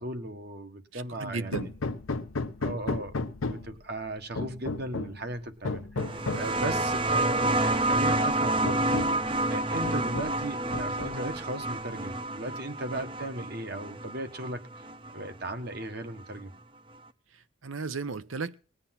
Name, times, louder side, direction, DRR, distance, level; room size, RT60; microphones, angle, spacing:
voice 1, 0.0-1.7 2.6-9.1 9.5-14.9 15.1-16.5, right 1 dB, 50° right, 7 dB, 1.5 m, -37 dB
voice 2, 0.9-1.7 17.3-18.5, right 4 dB, 85° right, 14 dB, 0.9 m, -35 dB
Hammer, 1.5-3.8 4.4-5.2 5.6-6.6 7.6-7.7 8.1-8.2 8.6-9.3 9.8-10.4 10.7-11.4, left 3 dB, 90° left, 0.8 m, -34 dB
sound 1, 6.0-15.2 16.4-16.5, right 2 dB, 25° right, 0.6 m, -29 dB
19.5 x 8.8 x 5.9 m, 0.39 s
head